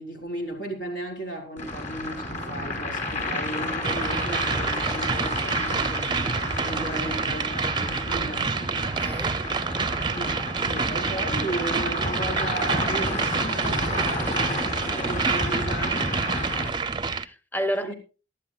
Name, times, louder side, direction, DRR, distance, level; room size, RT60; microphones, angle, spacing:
voice 1, 0.0-8.5 10.1-14.4 14.8-16.1 17.7-17.9, right 1 dB, 85° left, 4.4 m, -35 dB
sound 1, 1.6-16.7, left 1 dB, 40° left, 5.2 m, -31 dB
sound 2, 3.8-17.2, right 5 dB, 25° right, 0.5 m, -28 dB
voice 2, 6.7-7.1 8.8-9.4 17.1-17.9, equal, 10° left, 0.7 m, -32 dB
22.0 x 12.0 x 2.3 m
head